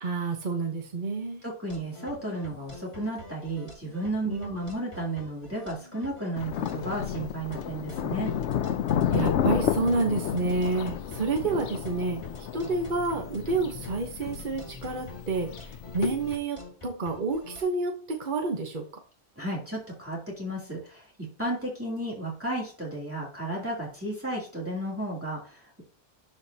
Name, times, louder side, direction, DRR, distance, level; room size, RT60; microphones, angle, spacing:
voice 1, 0.0-1.4 4.2-4.5 9.1-12.2 12.5-18.8, right 3 dB, 45° right, 3 dB, 1.2 m, -29 dB
voice 2, 1.4-8.3 19.4-21.1 21.4-25.8, right 1 dB, 10° right, -5 dB, 2.8 m, -33 dB
sound 1, 1.7-17.6, left 1 dB, 25° left, 3.2 m, -46 dB
Thunder, 6.4-16.4, left 9 dB, 85° left, 0.9 m, -31 dB
12.5 x 5.1 x 2.8 m, 0.42 s
omnidirectional pair, 1.2 m